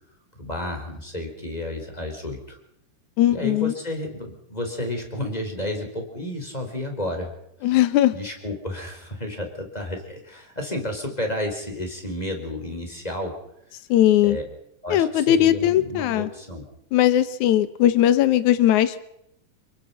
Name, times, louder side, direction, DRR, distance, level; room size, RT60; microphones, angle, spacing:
voice 1, 0.4-2.6 3.3-7.3 7.6-7.8 8.1-13.4 14.2-14.4 14.8-16.6, left 1 dB, 10° left, 4 dB, 4.6 m, -31 dB
voice 2, 3.2-3.7 7.6-8.1 13.9-14.4 14.9-16.3 16.9-19.1, left 12 dB, 65° left, 13 dB, 2.4 m, -19 dB
29.0 x 21.0 x 5.9 m, 0.76 s
omnidirectional pair, 4.0 m